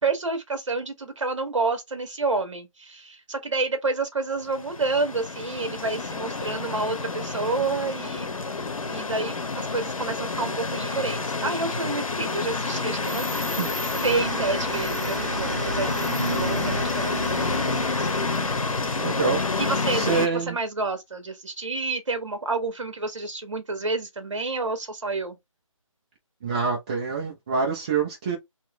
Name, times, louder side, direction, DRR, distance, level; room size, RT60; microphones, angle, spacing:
voice 1, 0.0-8.3 8.9-13.4 14.0-17.4 18.0-18.1 19.6-25.4, right 3 dB, 60° right, 1.4 m, -29 dB
sound 1, 4.5-20.3, left 3 dB, 75° left, 0.9 m, -28 dB
sound 2, 12.1-20.0, right 4 dB, 35° right, 0.9 m, -36 dB
voice 2, 19.0-19.4 19.9-20.6 26.4-28.4, right 5 dB, 15° right, 0.5 m, -26 dB
3.0 x 2.9 x 3.1 m
figure-of-eight pair, 155°, 17 cm